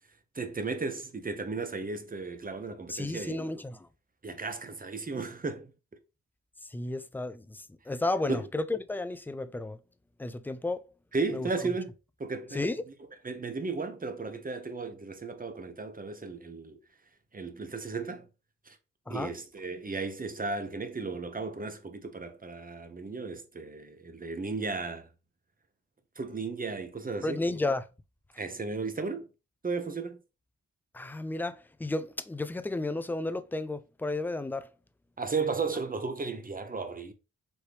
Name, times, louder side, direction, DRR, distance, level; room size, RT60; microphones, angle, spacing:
voice 1, 0.3-3.4 4.2-5.7 8.3-8.4 11.1-11.9 12.2-12.7 13.2-16.8 17.3-18.3 18.7-18.8 19.1-25.1 26.2-27.4 28.4-29.3 29.6-30.2 35.2-37.1, right 4 dB, 25° right, 0.8 m, -35 dB
voice 2, 2.9-3.9 6.6-9.8 10.2-10.8 11.3-11.5 12.5-12.8 19.1-19.3 27.2-27.9 30.9-34.7, left 2 dB, 5° left, 0.3 m, -33 dB
4.3 x 3.1 x 3.3 m
cardioid pair, 65°, 35 cm